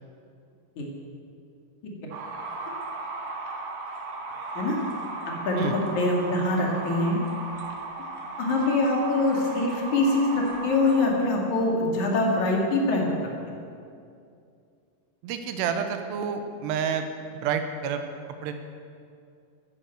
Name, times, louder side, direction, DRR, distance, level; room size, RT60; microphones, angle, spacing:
sound 1, 2.1-11.1, right 3 dB, 60° right, 3.1 m, -36 dB
voice 1, 5.3-7.2 8.4-13.0, left 2 dB, 50° left, -1 dB, 3.1 m, -24 dB
voice 2, 15.2-17.1 17.3-18.0 18.4-18.5, right 7 dB, 80° right, 7 dB, 3.0 m, -29 dB
14.5 x 10.0 x 7.9 m, 2.4 s
omnidirectional pair, 5.0 m